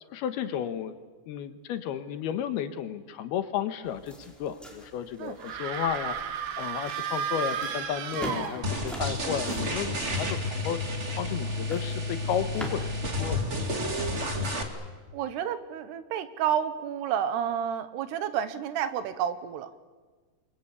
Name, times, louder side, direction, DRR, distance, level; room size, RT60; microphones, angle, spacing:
voice 1, 0.1-1.0 1.3-6.2 6.6-13.4, left 9 dB, 75° left, 10 dB, 3.1 m, -33 dB
sound 1, 3.8-13.0, right 1 dB, ahead, 4.1 m, -44 dB
sound 2, 5.4-9.1, right 8 dB, 65° right, 2.8 m, -33 dB
sound 3, 8.6-14.6, left 1 dB, 25° right, 1.8 m, -31 dB
voice 2, 15.1-19.7, right 9 dB, 80° right, 12 dB, 3.3 m, -30 dB
28.0 x 23.5 x 8.5 m, 1.4 s
omnidirectional pair, 4.7 m